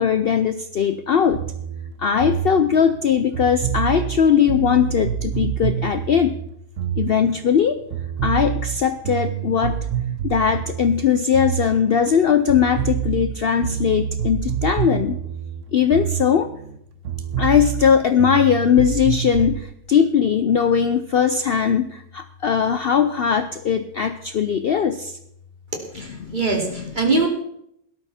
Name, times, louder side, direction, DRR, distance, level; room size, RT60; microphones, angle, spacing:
voice 1, 0.0-1.4 2.0-6.4 7.0-7.8 8.2-9.9 10.2-15.2 15.7-16.5 17.4-25.2 26.0-26.9, left 7 dB, 70° left, 10 dB, 0.5 m, -19 dB
sound 1, 1.3-7.6 7.9-12.2 12.5-16.8 17.0-19.6, right 10 dB, 55° right, 1.0 m, -27 dB
voice 2, 25.9-27.3, right 3 dB, 25° right, 0 dB, 3.1 m, -22 dB
17.5 x 12.5 x 4.3 m, 0.74 s
omnidirectional pair, 1.8 m